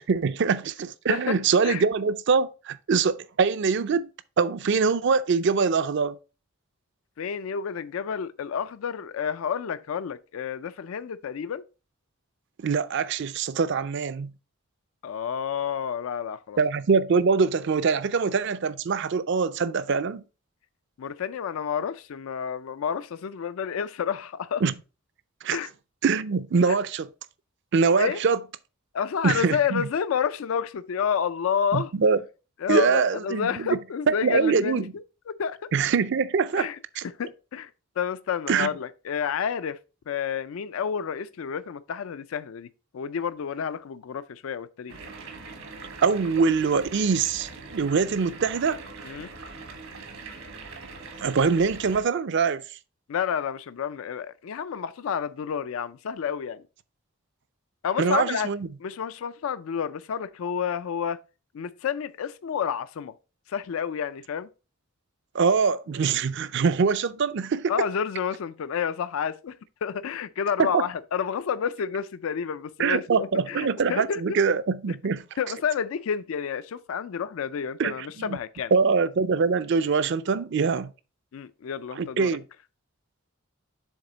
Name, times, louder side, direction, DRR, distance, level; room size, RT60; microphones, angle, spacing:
voice 1, 0.0-4.1 4.4-6.2 12.6-14.3 16.6-20.2 24.6-24.7 25.4-25.6 26.0-27.1 27.7-28.4 29.2-29.9 31.7-32.2 32.7-33.8 34.1-34.9 35.7-36.7 37.0-37.1 38.5-38.7 46.0-48.8 51.2-52.6 58.0-58.7 65.3-67.7 70.6-70.8 72.8-75.2 77.8-78.4 78.7-80.9 82.0-82.4, right 5 dB, 60° right, 0.4 m, -23 dB
voice 2, 7.2-11.6 15.0-16.6 21.0-24.6 25.5-25.7 26.7-26.8 28.0-28.2 28.9-31.9 32.6-35.0 35.4-35.7 36.5-36.8 37.0-37.7 38.0-39.8 40.1-42.7 42.9-45.1 49.0-49.3 53.1-56.6 57.8-58.5 58.8-61.2 61.5-63.1 63.5-64.5 67.7-74.4 75.4-78.7 81.3-82.4, left 7 dB, 75° left, 0.4 m, -30 dB
sound 1, 44.9-52.0, right 3 dB, 80° right, 1.3 m, -42 dB
7.2 x 3.6 x 3.9 m
head